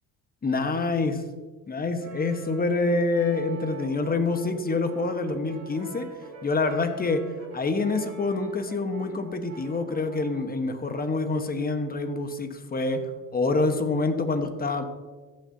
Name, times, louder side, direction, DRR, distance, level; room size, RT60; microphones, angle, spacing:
voice 1, 0.4-1.2 1.7-6.1 6.4-7.2 7.5-14.8, left 3 dB, 25° left, 8 dB, 1.1 m, -26 dB
Brass instrument, 2.0-10.6, right 3 dB, 40° right, 2.2 m, -45 dB
15.0 x 6.7 x 2.7 m, 1.4 s
supercardioid pair, 80°, 39 cm